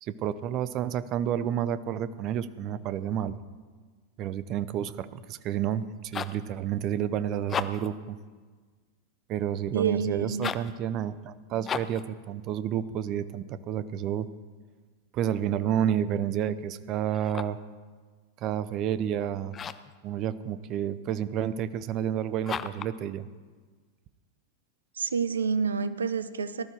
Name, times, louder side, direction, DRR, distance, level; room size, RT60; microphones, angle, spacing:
voice 1, 0.0-3.4 4.2-8.2 9.3-14.3 15.1-17.6 18.4-19.5 20.0-23.3, right 10 dB, 35° right, 15 dB, 0.7 m, -30 dB
sound 1, 5.8-6.5 7.4-8.0 10.3-10.8 11.6-12.1 17.1-17.7 19.5-20.0 22.4-23.0, left 7 dB, 25° left, 0.5 m, -35 dB
voice 2, 9.7-10.5 25.0-26.6, right 5 dB, 70° right, 13 dB, 0.8 m, -28 dB
18.5 x 12.5 x 4.7 m, 1.5 s
figure-of-eight pair, 90°, 0 cm